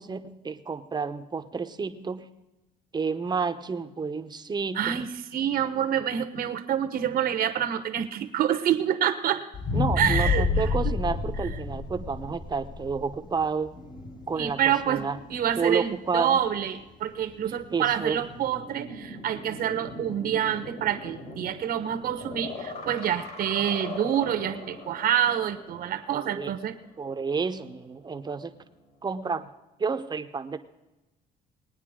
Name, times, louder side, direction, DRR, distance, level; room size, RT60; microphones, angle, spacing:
voice 1, 0.0-2.3 2.9-5.0 9.7-13.7 14.3-15.2 15.6-16.4 17.7-18.2 26.1-26.5 27.0-28.5 29.0-29.5 29.8-30.6, right 5 dB, 25° right, 8 dB, 0.8 m, -30 dB
voice 2, 4.7-9.4 10.0-10.5 14.4-26.7, right 9 dB, 60° right, 8 dB, 1.1 m, -27 dB
sound 1, 9.5-13.8 14.3-14.4, left 4 dB, 25° left, 1.0 m, -28 dB
sound 2, 13.7-27.7 28.0-29.4, left 2 dB, 60° left, 4.1 m, -43 dB
20.5 x 9.4 x 3.7 m, 1.0 s
cardioid pair, 110°, 17 cm